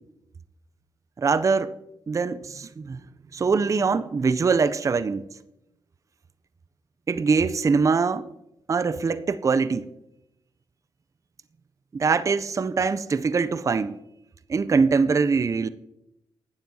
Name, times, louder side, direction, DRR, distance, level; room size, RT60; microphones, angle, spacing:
voice 1, 1.2-1.7 2.1-3.0 3.3-5.2 7.1-8.3 8.7-9.9 11.9-14.0 14.5-15.7, right 5 dB, 35° right, 0.4 m, -23 dB
11.5 x 9.1 x 2.7 m
cardioid pair, 60°, 10 cm